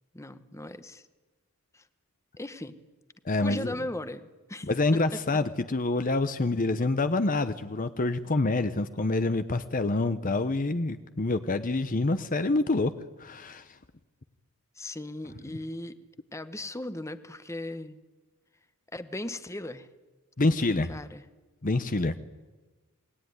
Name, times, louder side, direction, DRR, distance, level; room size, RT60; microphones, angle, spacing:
voice 1, 0.1-1.0 1.7-1.8 2.4-2.8 3.4-4.7 14.8-16.0 16.3-18.0 18.9-19.9 20.9-21.3, left 1 dB, 15° left, 11 dB, 1.1 m, -37 dB
voice 2, 3.2-3.7 4.6-12.9 13.2-13.7 15.5-15.6 20.4-20.9 21.6-22.1, left 2 dB, 40° left, 11 dB, 0.9 m, -27 dB
28.0 x 20.5 x 9.7 m, 1.2 s
head